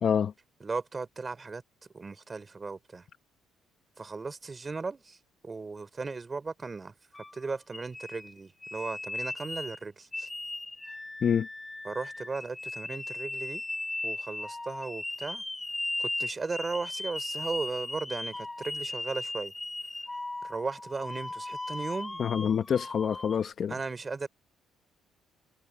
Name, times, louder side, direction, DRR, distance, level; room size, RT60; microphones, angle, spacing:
voice 1, 0.0-0.3 11.2-11.5 22.2-23.8, left 7 dB, 50° left, 1.0 m, -27 dB
voice 2, 0.6-1.6 1.9-3.1 4.0-5.2 5.4-6.9 7.3-10.3 11.8-13.6 14.0-15.4 16.0-19.5 20.4-22.2 23.7-24.3, right 4 dB, 30° right, 3.6 m, -36 dB
sound 1, 7.1-9.8 10.1-23.5, left 2 dB, 15° left, 3.5 m, -37 dB
supercardioid pair, 80°, 0 cm